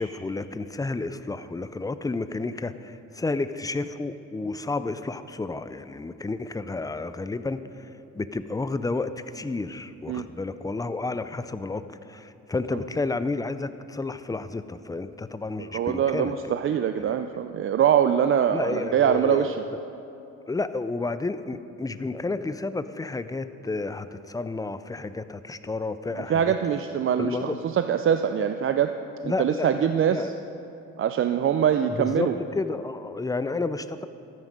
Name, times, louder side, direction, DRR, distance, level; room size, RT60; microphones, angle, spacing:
voice 1, 0.0-16.3 18.5-19.9 20.5-26.5 27.2-27.6 29.2-30.3 31.9-34.1, left 3 dB, 10° left, 12 dB, 0.4 m, -31 dB
voice 2, 15.6-19.6 26.1-28.9 29.4-30.3 31.0-32.3, right 8 dB, 45° right, 8 dB, 0.4 m, -23 dB
13.5 x 9.4 x 5.2 m, 2.8 s
cardioid pair, 90°, 30 cm